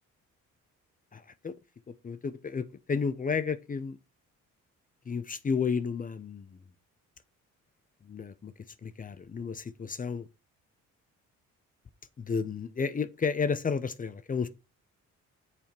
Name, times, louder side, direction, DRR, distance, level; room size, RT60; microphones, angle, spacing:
voice 1, 1.1-1.5 2.0-4.0 5.1-6.6 8.0-8.5 8.8-10.3 12.2-14.5, left 5 dB, 25° left, 0.6 m, -32 dB
7.1 x 3.5 x 4.4 m
cardioid pair, 90°, 30 cm